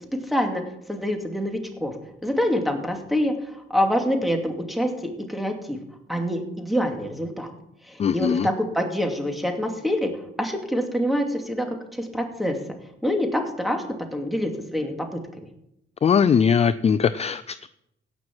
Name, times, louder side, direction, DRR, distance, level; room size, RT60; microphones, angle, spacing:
voice 1, 0.3-0.6 0.9-1.9 2.2-4.9 5.3-5.8 6.1-7.5 7.9-10.1 10.4-12.6 13.0-13.8 14.1-15.1 15.4-15.5, equal, ahead, 3 dB, 2.5 m, -26 dB
voice 2, 8.0-8.5 16.0-17.7, left 7 dB, 30° left, 15 dB, 0.4 m, -20 dB
17.0 x 6.3 x 6.1 m, 0.81 s
cardioid pair, 90°, 20 cm